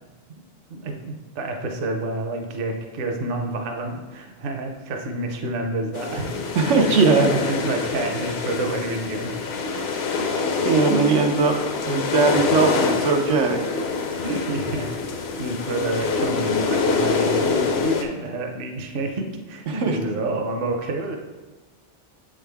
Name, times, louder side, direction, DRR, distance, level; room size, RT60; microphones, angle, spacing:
voice 1, 0.7-6.8 7.2-9.6 13.2-13.4 14.2-21.2, right 2 dB, 55° right, 3 dB, 0.8 m, -29 dB
sound 1, 5.9-18.0, left 4 dB, 65° left, 0.8 m, -25 dB
voice 2, 6.5-7.4 9.7-9.9 10.6-11.6 11.9-13.6 19.7-20.0, right 4 dB, 90° right, 2 dB, 1.1 m, -19 dB
7.9 x 3.7 x 3.4 m, 1.2 s
omnidirectional pair, 1.2 m